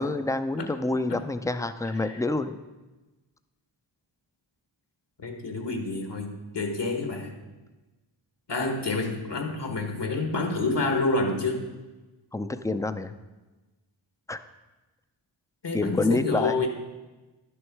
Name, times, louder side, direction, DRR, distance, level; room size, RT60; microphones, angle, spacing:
voice 1, 0.0-2.6 12.3-13.1 14.3-14.4 15.7-16.6, left 2 dB, 5° left, 10 dB, 0.5 m, -27 dB
voice 2, 5.2-7.4 8.5-11.6 15.6-16.7, left 3 dB, 60° left, 4 dB, 1.7 m, -28 dB
10.5 x 6.4 x 4.6 m, 1.1 s
cardioid pair, 50°, 47 cm